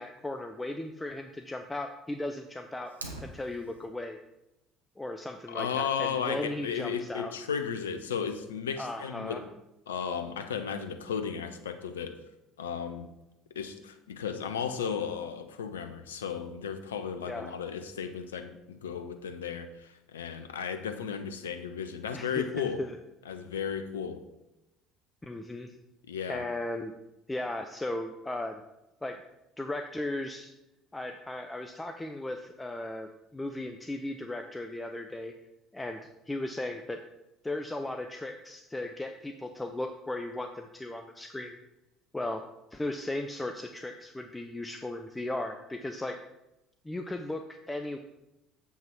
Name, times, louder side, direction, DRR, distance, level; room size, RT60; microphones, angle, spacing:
voice 1, 0.0-2.9 3.2-4.2 5.0-7.3 8.8-9.4 17.3-17.5 22.1-23.0 25.2-25.7 26.3-26.9 27.3-28.6 29.0-29.2 29.6-30.5 30.9-35.3 35.7-37.0 37.4-41.6 42.1-42.4 42.7-46.2 46.8-48.0, left 1 dB, 10° left, 5 dB, 0.6 m, -36 dB
Fire, 2.9-3.9, right 2 dB, 90° right, 0.8 m, -43 dB
voice 2, 5.5-9.4 9.9-12.2 12.6-13.1 13.5-22.8 23.3-24.2 26.1-26.5, left 7 dB, 80° left, 8 dB, 0.6 m, -34 dB
7.5 x 5.5 x 4.5 m, 0.92 s
figure-of-eight pair, 60°, 0 cm